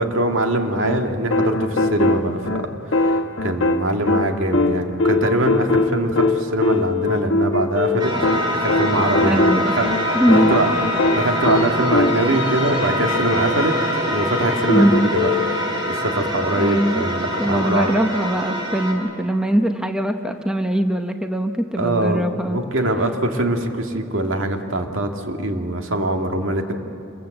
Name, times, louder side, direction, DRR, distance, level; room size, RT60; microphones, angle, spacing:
voice 1, 0.0-2.4 2.9-8.1 8.6-9.9 10.5-10.7 11.2-13.7 14.1-17.9 21.8-22.2 22.5-26.7, right 1 dB, 80° right, 3 dB, 2.1 m, -23 dB
sound 1, 0.8-12.5 14.7-15.5, left 2 dB, 70° left, 1.2 m, -21 dB
sound 2, 8.0-18.9, equal, 20° right, 3.9 m, -24 dB
voice 2, 9.2-9.8 10.1-10.5 14.7-15.1 16.5-17.1 17.4-22.6, equal, 5° right, 6 dB, 0.9 m, -21 dB
Bowed string instrument, 9.6-14.9, left 3 dB, 30° left, 2.8 m, -37 dB
27.0 x 22.0 x 7.9 m, 2.6 s
head